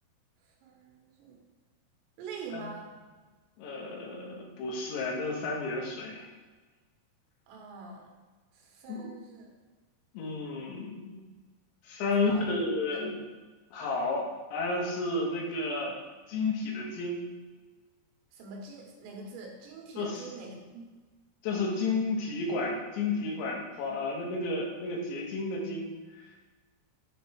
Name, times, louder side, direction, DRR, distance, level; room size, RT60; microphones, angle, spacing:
voice 1, 0.6-1.4 2.2-2.9 7.5-8.1 8.5-9.5 12.0-12.5 12.9-13.0 18.3-20.9, right 4 dB, 85° right, 0 dB, 3.3 m, -44 dB
voice 2, 3.6-6.3 8.9-9.1 10.2-11.2 11.9-13.2 13.7-16.0 16.3-17.2 20.0-20.3 21.4-25.9, left 3 dB, 85° left, -2 dB, 3.4 m, -32 dB
7.9 x 3.2 x 4.6 m, 1.3 s
omnidirectional pair, 4.8 m